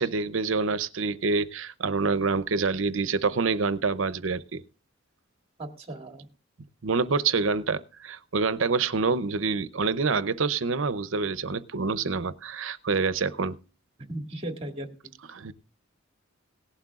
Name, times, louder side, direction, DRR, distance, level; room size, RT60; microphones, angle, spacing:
voice 1, 0.0-4.6 6.8-13.6 15.3-15.5, right 4 dB, 75° right, 0.7 m, -27 dB
voice 2, 5.6-6.3 14.1-14.9, right 1 dB, 30° right, 1.9 m, -36 dB
18.0 x 11.5 x 2.4 m
head